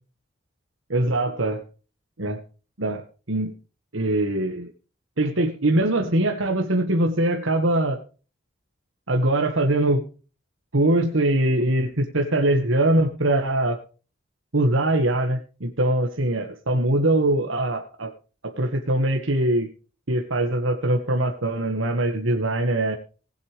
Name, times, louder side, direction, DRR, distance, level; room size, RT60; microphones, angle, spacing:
voice 1, 0.9-1.6 2.2-2.4 2.8-3.5 3.9-4.7 5.2-8.0 9.1-10.0 10.7-13.8 14.5-18.1 18.4-19.7 20.1-23.0, right 1 dB, 85° right, 3 dB, 1.7 m, -22 dB
20.0 x 8.2 x 3.4 m, 0.36 s
head